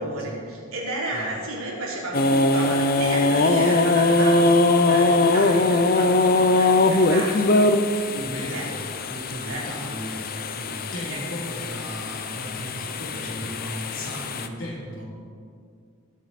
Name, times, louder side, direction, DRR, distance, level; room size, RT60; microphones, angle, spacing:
voice 1, 0.0-7.7 8.5-8.7 9.4-9.6 11.1-11.2, right 1 dB, 75° right, -4 dB, 3.4 m, -32 dB
sound 1, 2.1-14.5, left 2 dB, 45° left, 0.6 m, -21 dB
voice 2, 8.1-10.3 10.6-15.0, equal, 60° left, -3 dB, 2.9 m, -35 dB
19.5 x 7.5 x 4.1 m, 2.3 s
head